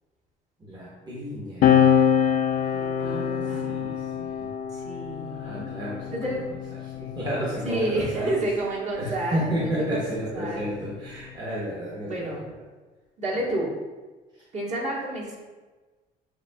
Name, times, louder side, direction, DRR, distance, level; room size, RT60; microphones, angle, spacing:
voice 1, 0.6-1.9 3.0-4.5 5.3-8.3 8.9-12.4 14.3-14.4, equal, 25° right, -6 dB, 1.0 m, -32 dB
sound 1, 1.6-8.5 9.5-11.3, left 8 dB, 60° left, 0.5 m, -26 dB
voice 2, 2.7-3.9 4.7-5.7 6.1-6.5 7.6-10.7 12.1-12.4 13.2-13.7 14.5-15.4, right 1 dB, 45° right, -4 dB, 1.5 m, -30 dB
8.0 x 2.7 x 2.3 m, 1.3 s
cardioid pair, 110°, 17 cm